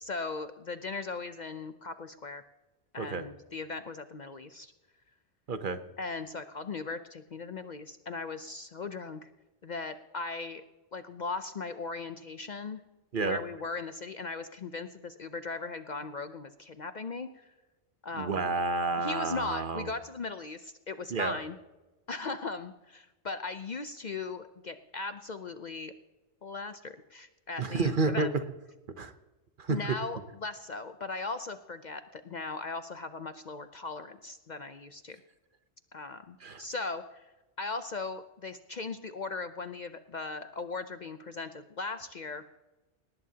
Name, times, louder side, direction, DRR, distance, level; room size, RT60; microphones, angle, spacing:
voice 1, 0.0-2.4 2.9-4.7 6.0-9.3 9.6-10.6 10.9-12.8 13.2-17.5 18.0-18.4 19.0-21.6 22.1-25.9 26.4-28.3 29.7-35.2 35.9-37.3 37.6-42.4, left 3 dB, 50° left, 10 dB, 0.6 m, -38 dB
voice 2, 5.5-5.8 13.1-13.4 18.2-19.9 21.1-21.4 27.6-28.3 29.0-29.1 29.6-29.8 36.4-36.6, right 3 dB, 50° right, 10 dB, 1.0 m, -30 dB
18.5 x 18.5 x 2.8 m, 1.1 s
omnidirectional pair, 1.2 m